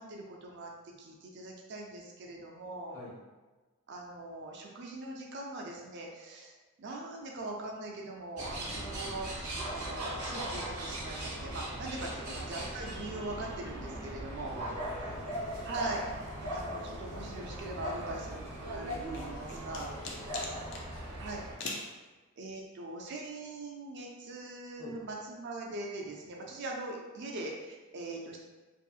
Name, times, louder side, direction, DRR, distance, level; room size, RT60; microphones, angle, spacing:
voice 1, 0.0-3.0 3.9-6.5 6.8-14.6 15.6-16.0 16.5-19.9 21.2-21.4 22.4-28.4, right 2 dB, 50° right, 0 dB, 0.4 m, -41 dB
sound 1, 8.4-21.5, right 1 dB, 90° right, 0.9 m, -39 dB
voice 2, 12.0-12.5 14.1-14.2 14.5-15.2 19.4-21.5 24.8-25.0, left 2 dB, 15° left, -14 dB, 0.7 m, -52 dB
sound 2, 14.5-20.8, left 3 dB, 75° left, 1.2 m, -54 dB
sound 3, 18.9-20.9 21.6-21.9, left 3 dB, 55° left, 0.4 m, -40 dB
2.7 x 2.6 x 2.4 m, 1.2 s
head